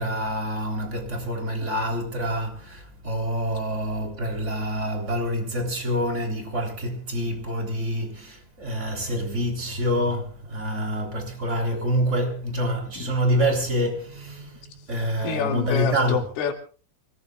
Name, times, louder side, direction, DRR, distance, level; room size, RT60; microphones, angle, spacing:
voice 1, 0.0-16.3, equal, 15° right, 3.0 m, -27 dB
voice 2, 15.2-16.5, left 8 dB, 75° left, 4.8 m, -27 dB
27.5 x 18.5 x 2.4 m
omnidirectional pair, 5.8 m